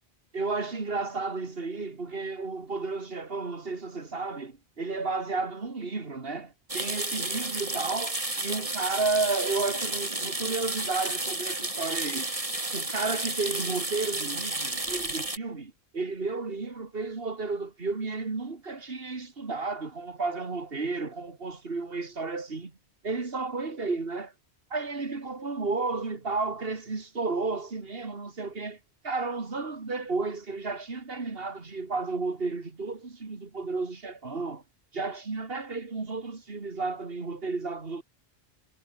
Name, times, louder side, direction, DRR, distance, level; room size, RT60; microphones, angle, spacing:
voice 1, 0.3-12.3 12.7-22.7 23.0-24.3 24.7-28.8 29.0-34.6 34.9-38.0, right 3 dB, 65° right, 2.5 m, -32 dB
sound 1, 6.7-15.4, right 2 dB, 30° right, 3.0 m, -32 dB
omnidirectional pair, 1.1 m